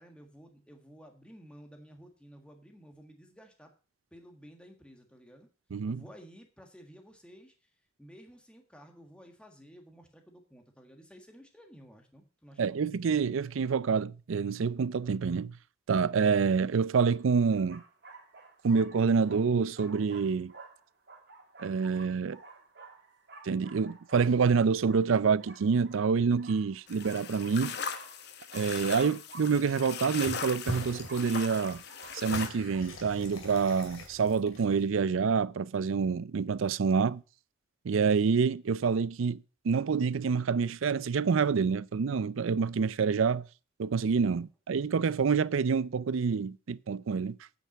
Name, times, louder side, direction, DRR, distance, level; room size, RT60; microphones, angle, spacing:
voice 1, 0.0-3.7 4.1-5.5 5.9-7.7 8.0-12.8, equal, 5° left, 1.5 m, -53 dB
voice 2, 5.7-6.0 12.6-15.5 15.9-17.8 18.6-20.5 21.6-22.4 23.4-27.8 28.5-31.8 32.1-37.2 37.8-39.4 39.6-43.5 43.8-47.4, right 5 dB, 75° right, 0.4 m, -27 dB
sound 1, 16.2-16.3 17.0-32.8, right 3 dB, 55° right, 2.3 m, -53 dB
sound 2, 26.9-32.5, left 6 dB, 55° left, 0.9 m, -39 dB
sound 3, 30.2-30.4 30.7-31.3 31.6-35.0, left 1 dB, 90° left, 2.5 m, -42 dB
8.8 x 5.8 x 7.3 m
head